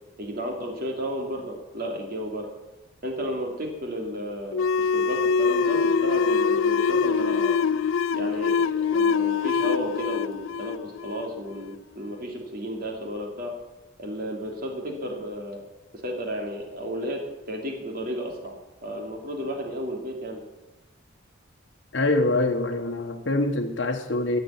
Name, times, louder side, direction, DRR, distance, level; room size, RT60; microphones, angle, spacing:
voice 1, 0.2-2.5 3.0-7.5 8.1-13.5 14.0-15.6 16.0-17.2 17.5-18.5 18.8-20.4, equal, 45° right, 1 dB, 3.0 m, -33 dB
sound 1, 4.5-11.7, left 5 dB, 75° left, 0.4 m, -24 dB
voice 2, 21.9-24.4, left 2 dB, 60° left, 2 dB, 1.2 m, -24 dB
15.0 x 7.1 x 8.8 m, 1.1 s
head